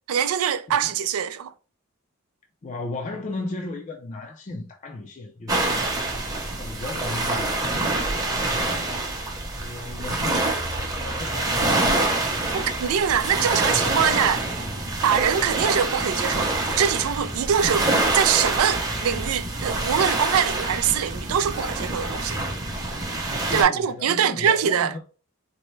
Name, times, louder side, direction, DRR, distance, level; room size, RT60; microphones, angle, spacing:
voice 1, 0.1-1.5 12.5-14.6 15.0-22.5 23.5-24.9, right 8 dB, 80° right, 0.3 m, -23 dB
voice 2, 2.6-7.7 8.2-8.9 9.5-11.9 23.4-25.0, left 2 dB, 35° left, 0.4 m, -36 dB
sound 1, 5.5-23.6, right 2 dB, 15° right, 0.8 m, -26 dB
4.1 x 2.1 x 3.2 m
head